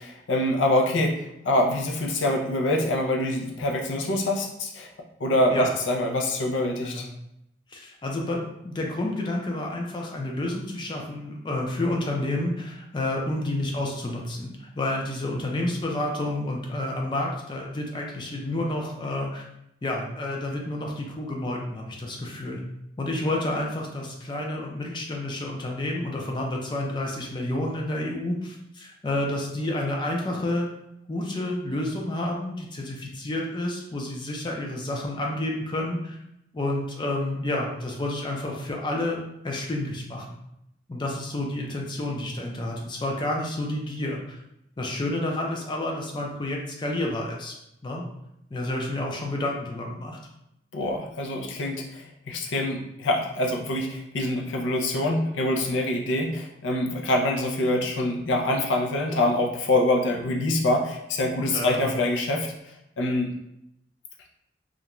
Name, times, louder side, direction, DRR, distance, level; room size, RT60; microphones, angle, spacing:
voice 1, 0.0-4.9 5.2-7.1 50.7-63.3, left 1 dB, 85° left, 2 dB, 0.5 m, -25 dB
voice 2, 7.7-19.4 19.8-22.6 23.0-30.7 31.1-36.2 36.5-40.3 40.9-44.4 44.8-47.5 47.8-48.1 48.5-50.2 61.5-61.8, left 1 dB, 25° left, 0 dB, 0.4 m, -30 dB
2.4 x 2.2 x 2.9 m, 0.83 s
head